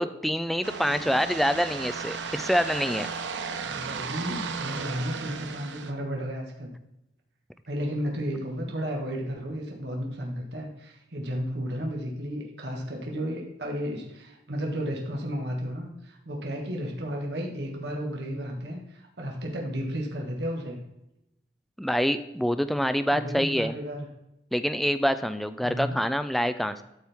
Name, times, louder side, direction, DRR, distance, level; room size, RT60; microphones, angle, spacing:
voice 1, 0.0-3.1 21.8-23.8 24.5-26.8, equal, ahead, 11 dB, 0.3 m, -26 dB
sound 1, 0.6-5.9, right 5 dB, 85° right, 0.8 m, -35 dB
voice 2, 3.7-6.7 7.7-20.8 23.1-24.1 25.6-25.9, equal, 70° right, 0 dB, 1.5 m, -33 dB
13.0 x 4.5 x 3.5 m, 0.88 s
head